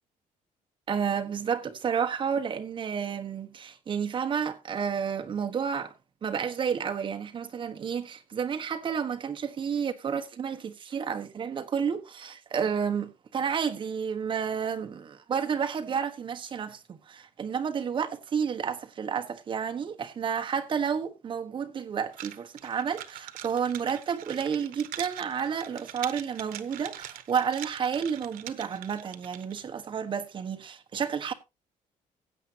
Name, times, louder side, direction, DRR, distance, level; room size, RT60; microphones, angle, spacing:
voice 1, 0.9-5.9 6.2-31.3, right 7 dB, 35° right, 1.3 m, -31 dB
sound 1, 22.1-29.6, right 13 dB, 85° right, 1.1 m, -43 dB
16.0 x 8.4 x 2.9 m
cardioid pair, 155°, 14 cm